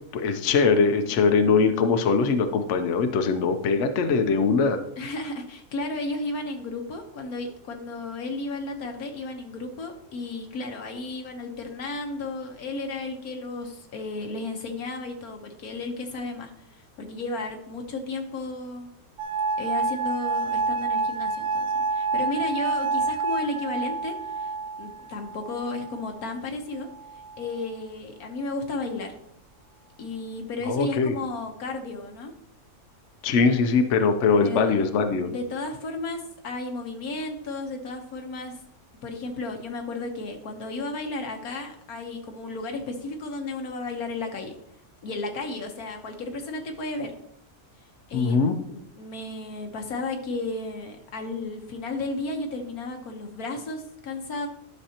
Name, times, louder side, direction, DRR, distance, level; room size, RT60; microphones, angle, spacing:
voice 1, 0.1-4.8 30.6-31.1 33.2-35.3 48.1-48.5, left 5 dB, 60° left, 7 dB, 1.0 m, -21 dB
voice 2, 5.0-18.9 19.6-24.5 24.8-26.9 27.4-29.1 30.0-32.3 34.4-34.7 35.3-38.6 39.0-44.5 45.0-47.1 48.1-54.5, left 2 dB, 85° left, 4 dB, 1.6 m, -33 dB
sound 1, 19.2-26.1 27.0-27.6, right 4 dB, 60° right, 0.6 m, -28 dB
11.0 x 6.4 x 2.9 m, 0.73 s
omnidirectional pair, 1.5 m